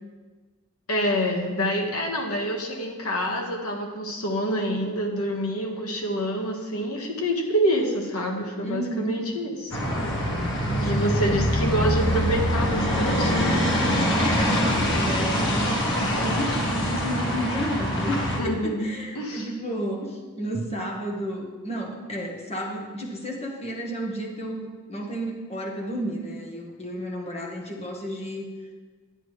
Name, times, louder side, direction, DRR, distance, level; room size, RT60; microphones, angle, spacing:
voice 1, 0.9-9.7 10.8-13.5 18.4-19.5, equal, 90° left, 0 dB, 1.6 m, -27 dB
voice 2, 8.6-9.2 10.5-11.0 11.2-11.4 14.2-28.5, equal, 30° left, 0 dB, 1.4 m, -32 dB
sound 1, 9.7-18.4, equal, 60° left, 1.8 m, -24 dB
10.5 x 9.2 x 3.3 m, 1.4 s
head